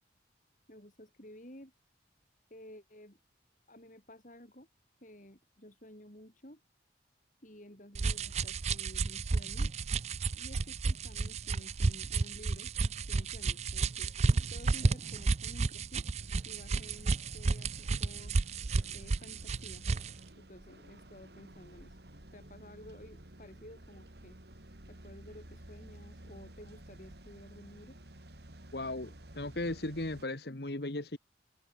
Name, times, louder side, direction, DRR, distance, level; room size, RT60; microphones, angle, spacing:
voice 1, 0.7-1.7 2.5-3.2 3.7-4.7 5.0-6.6 7.4-9.8 10.3-12.7 13.1-14.1 14.5-16.1 16.4-18.3 18.9-19.9 20.4-22.0 22.3-24.4 24.9-28.0, left 1 dB, 45° left, 7.8 m, -53 dB
sound 1, 7.9-20.2, right 3 dB, 35° right, 0.4 m, -32 dB
sound 2, 16.2-30.2, right 1 dB, 60° right, 3.1 m, -53 dB
voice 2, 28.7-29.1 29.3-31.2, left 2 dB, 60° left, 1.7 m, -36 dB
head